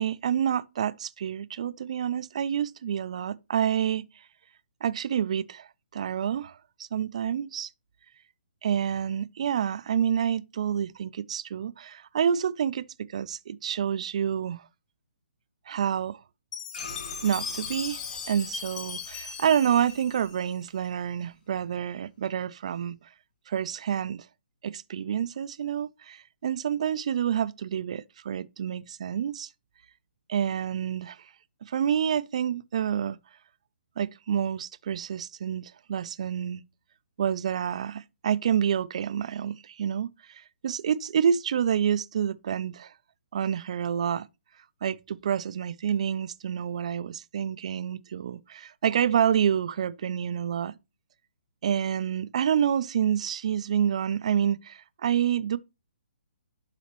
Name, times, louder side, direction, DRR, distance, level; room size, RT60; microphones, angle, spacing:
voice 1, 0.0-4.2 4.8-7.7 8.6-14.7 15.7-16.2 17.2-23.0 23.5-24.3 24.6-29.5 30.3-31.3 31.7-33.2 34.0-36.6 37.2-42.9 43.3-44.3 44.8-50.8 51.6-55.6, right 8 dB, 35° right, 0.3 m, -28 dB
Chime, 16.5-20.9, left 5 dB, 10° left, 0.6 m, -38 dB
sound 1, 16.7-21.3, left 4 dB, 55° left, 2.0 m, -46 dB
11.5 x 4.1 x 2.9 m
hypercardioid pair, 175°, 6 cm